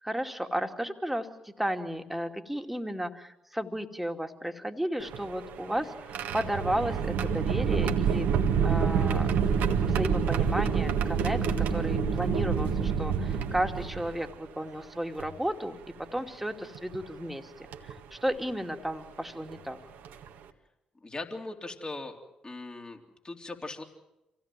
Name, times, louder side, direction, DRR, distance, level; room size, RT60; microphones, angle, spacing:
voice 1, 0.0-8.3 8.6-9.3 9.9-19.8, equal, 5° right, 5 dB, 2.5 m, -33 dB
sound 1, 5.0-14.3 15.2-15.3 16.7-17.0 17.7-17.9 19.5-19.6 20.0-20.3, right 6 dB, 70° right, 1.7 m, -27 dB
voice 2, 21.0-22.2 22.4-23.8, left 2 dB, 30° left, 3 dB, 3.6 m, -39 dB
27.0 x 17.0 x 7.6 m, 0.93 s
hypercardioid pair, 45°, 3 cm